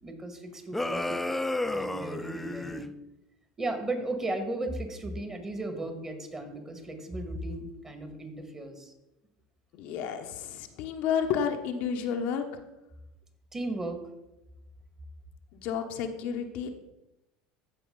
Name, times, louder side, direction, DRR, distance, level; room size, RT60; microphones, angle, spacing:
voice 1, 0.0-1.1 1.7-2.9 3.6-8.9 13.5-14.0, right 2 dB, 20° right, 6 dB, 1.9 m, -35 dB
sound 1, 0.7-2.9, left 2 dB, 5° left, 0.5 m, -31 dB
voice 2, 9.7-12.5 15.5-16.7, left 7 dB, 60° left, 4 dB, 1.0 m, -31 dB
14.5 x 4.9 x 3.9 m, 0.93 s
hypercardioid pair, 90°, 3 cm